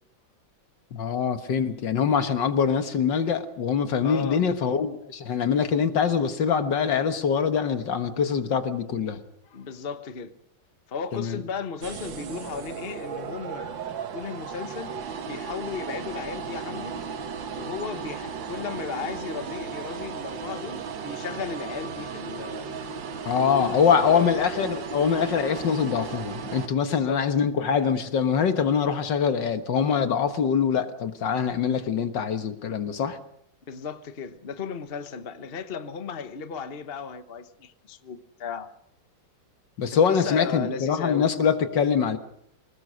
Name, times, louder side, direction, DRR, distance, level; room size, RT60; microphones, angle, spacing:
voice 1, 0.9-9.2 11.1-11.4 23.3-33.2 39.8-42.2, left 6 dB, 65° left, 9 dB, 2.0 m, -24 dB
voice 2, 4.0-4.4 9.5-10.3 10.9-13.7 14.1-14.9 15.3-17.0 17.6-22.7 23.4-24.7 26.9-27.3 33.7-38.7 40.1-41.3, left 6 dB, 35° left, 10 dB, 1.1 m, -35 dB
sound 1, 11.8-26.7, right 6 dB, 70° right, 2.0 m, -35 dB
26.5 x 19.0 x 6.4 m, 0.72 s
omnidirectional pair, 2.2 m